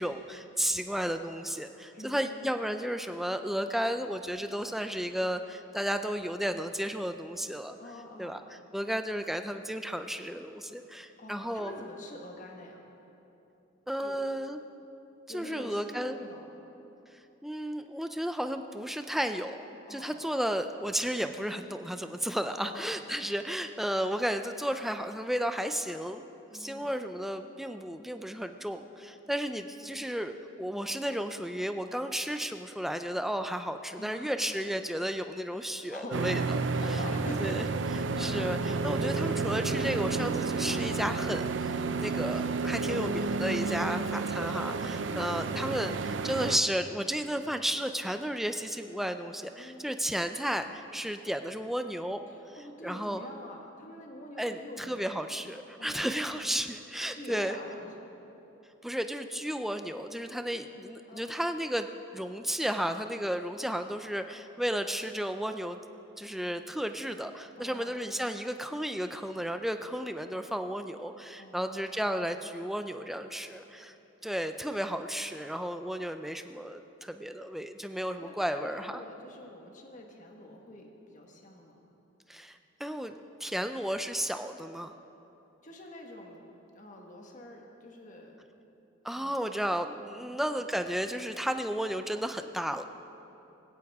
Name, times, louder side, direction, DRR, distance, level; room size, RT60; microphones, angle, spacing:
voice 1, 0.0-7.8 8.2-11.7 13.9-14.6 15.3-16.2 17.4-19.6 19.9-26.2 26.5-36.6 37.4-37.6 38.2-52.2 52.8-53.2 54.4-57.6 58.8-61.9 62.1-65.8 66.2-73.9 74.2-79.0 82.3-84.9 89.0-92.8, equal, ahead, 7 dB, 0.5 m, -33 dB
voice 2, 1.9-2.4 7.8-8.4 11.2-12.8 14.0-14.2 15.3-16.5 19.9-20.2 22.6-23.0 26.5-27.0 29.8-30.0 34.0-34.4 35.5-37.7 38.2-38.3 43.9-44.1 45.0-45.2 49.6-49.9 52.3-55.2 55.8-56.2 57.1-58.1 61.1-61.3 67.6-68.0 71.4-71.9 78.2-81.8 85.6-86.4 86.7-88.4 89.1-89.4 90.2-90.4, left 1 dB, 40° left, 1 dB, 1.5 m, -46 dB
sound 1, 36.1-46.6, right 4 dB, 65° right, 0.5 m, -31 dB
19.0 x 16.5 x 3.6 m, 3.0 s
head